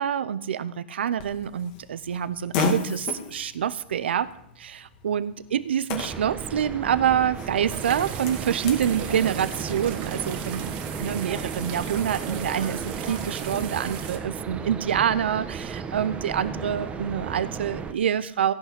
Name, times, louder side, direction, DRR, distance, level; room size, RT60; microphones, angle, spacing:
voice 1, 0.0-4.3 4.6-18.5, right 9 dB, 75° right, 16 dB, 0.7 m, -26 dB
Fart, 1.2-8.9, left 4 dB, 50° left, 2.5 m, -35 dB
sound 1, 5.9-17.9, right 5 dB, 20° right, 1.1 m, -35 dB
sound 2, 7.7-14.2, right 7 dB, 55° right, 2.1 m, -37 dB
16.5 x 6.2 x 8.5 m, 0.75 s
hypercardioid pair, 115°, 6 cm